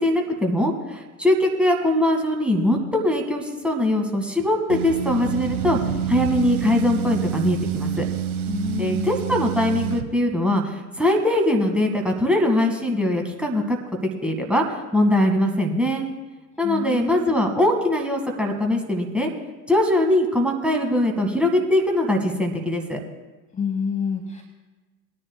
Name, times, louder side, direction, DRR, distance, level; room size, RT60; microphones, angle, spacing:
voice 1, 0.0-5.8 6.1-8.1 8.8-13.8 14.2-14.6 14.9-16.0 16.6-19.3 19.7-23.0, left 1 dB, ahead, 1 dB, 1.7 m, -21 dB
sound 1, 4.7-10.1, right 8 dB, 65° right, 1.1 m, -27 dB
voice 2, 8.5-9.1 16.6-17.3 23.5-24.4, left 6 dB, 15° left, 4 dB, 1.1 m, -28 dB
21.0 x 10.0 x 2.2 m, 1.2 s
figure-of-eight pair, 75°, 46 cm